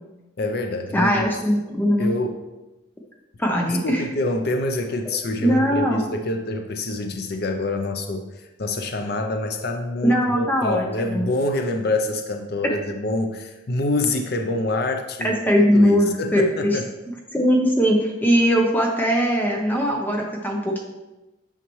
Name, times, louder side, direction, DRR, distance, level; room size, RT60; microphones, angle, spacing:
voice 1, 0.4-1.3 2.0-2.4 3.8-8.3 8.6-15.4 15.7-16.9, left 2 dB, 55° left, 5 dB, 0.6 m, -26 dB
voice 2, 0.9-2.1 3.4-4.0 5.0-5.1 5.4-6.0 10.0-11.3 15.2-16.8 17.3-20.8, equal, 10° left, 0 dB, 0.8 m, -20 dB
9.0 x 5.7 x 3.1 m, 1.1 s
head